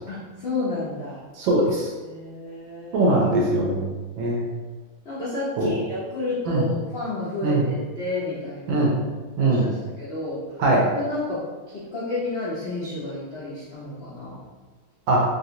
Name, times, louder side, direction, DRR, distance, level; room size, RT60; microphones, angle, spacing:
voice 1, 0.1-1.2 2.0-3.1 5.0-8.9 9.4-10.6 10.9-14.4, left 2 dB, 60° left, -11 dB, 0.6 m, -31 dB
voice 2, 1.4-1.9 2.9-3.9 4.2-4.5 5.6-5.7 6.5-6.6 7.4-7.6 8.7-8.9 9.4-9.7 10.6-10.8 15.1-15.2, right 2 dB, 70° right, -3 dB, 1.3 m, -21 dB
3.5 x 2.5 x 2.8 m, 1.3 s
omnidirectional pair, 2.4 m